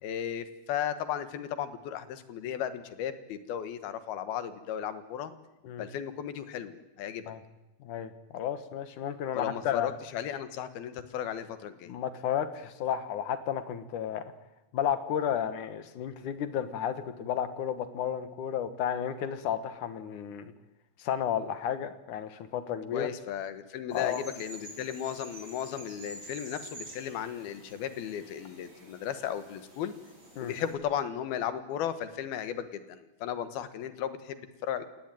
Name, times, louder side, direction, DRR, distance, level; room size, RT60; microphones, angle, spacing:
voice 1, 0.0-5.3 5.8-7.2 9.3-11.9 22.9-30.0 30.4-34.9, left 9 dB, 80° left, 11 dB, 3.4 m, -35 dB
voice 2, 7.8-9.9 11.9-14.3 14.7-20.5 21.0-23.1 23.9-24.2 30.4-30.6, left 9 dB, 65° left, 11 dB, 2.6 m, -32 dB
sound 1, 23.9-30.7, right 1 dB, 30° right, 6.2 m, -49 dB
26.5 x 18.5 x 9.1 m, 0.98 s
omnidirectional pair, 4.3 m